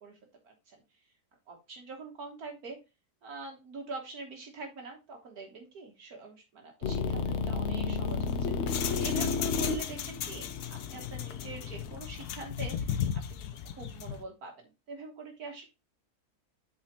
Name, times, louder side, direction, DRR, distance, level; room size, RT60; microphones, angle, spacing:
voice 1, 0.4-0.8 1.5-2.8 3.2-13.0 13.4-15.7, right 4 dB, 70° right, 2 dB, 1.6 m, -44 dB
sound 1, 6.8-12.0, left 5 dB, 55° left, 0.8 m, -31 dB
sound 2, 8.1-14.2, left 9 dB, 80° left, 1.2 m, -36 dB
8.6 x 4.3 x 2.8 m, 0.26 s
omnidirectional pair, 1.7 m